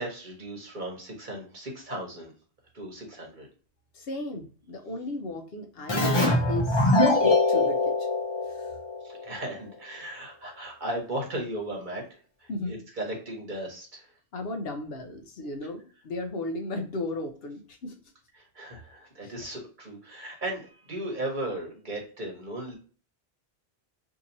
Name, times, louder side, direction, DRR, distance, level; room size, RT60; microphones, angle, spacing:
voice 1, 0.0-2.3 2.7-3.5 9.0-14.1 18.3-22.8, right 1 dB, 50° right, 0 dB, 1.2 m, -36 dB
voice 2, 3.9-6.9 7.2-8.1 8.5-8.7 12.5-12.7 14.3-17.9, left 2 dB, 65° left, 4 dB, 0.8 m, -35 dB
Keyboard (musical), 5.9-9.3, left 2 dB, 30° left, 0.7 m, -23 dB
2.8 x 2.7 x 3.8 m, 0.40 s
omnidirectional pair, 1.1 m